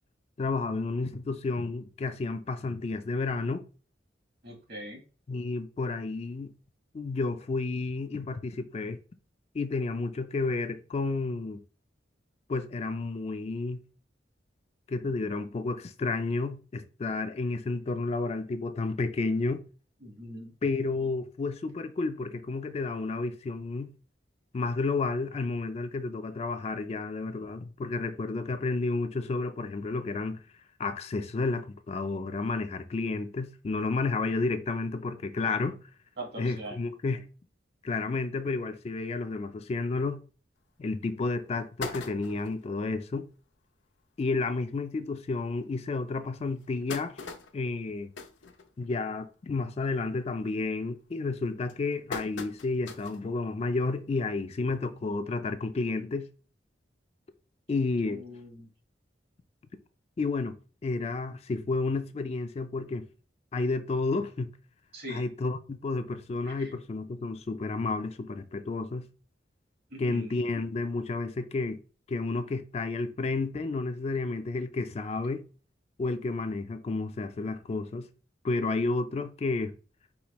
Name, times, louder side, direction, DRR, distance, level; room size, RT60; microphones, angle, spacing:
voice 1, 0.4-3.6 5.3-6.5 6.9-9.0 9.5-11.6 12.5-13.8 14.9-19.6 20.6-23.9 24.5-30.4 30.8-35.8 36.4-37.3 37.8-40.2 40.8-43.3 44.2-47.2 47.5-48.1 48.8-56.3 57.7-58.2 60.2-60.6 60.8-63.1 63.5-64.5 65.1-69.0 70.0-71.8 72.1-75.4 76.0-78.1 78.4-79.8, left 3 dB, 35° left, 0.3 m, -31 dB
voice 2, 4.4-5.0 20.0-20.5 36.2-36.8 58.0-58.7 64.9-65.2 66.4-66.7 69.9-70.4, equal, 60° right, 1.5 m, -41 dB
sound 1, 40.7-40.8 41.2-41.3 41.6-42.6 43.2-43.3 43.6-43.7 44.0-44.2 44.9-45.0 45.5-45.6 46.3-49.2 49.5-49.9 50.2-50.6 51.2-53.3 53.7-53.8 55.0-55.1, left 4 dB, 85° left, 0.6 m, -41 dB
4.9 x 2.9 x 3.0 m
head